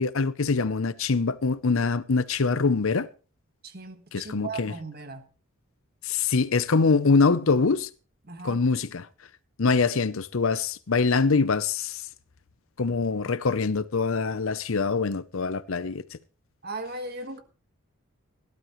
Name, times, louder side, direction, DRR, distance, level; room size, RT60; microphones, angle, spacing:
voice 1, 0.0-3.1 4.1-4.7 6.1-7.9 8.4-9.1 9.6-12.0 12.8-16.0, left 4 dB, 70° left, 0.7 m, -24 dB
voice 2, 3.6-5.3 8.2-8.6 16.6-17.4, right 3 dB, 45° right, 1.5 m, -37 dB
17.5 x 12.0 x 3.1 m
head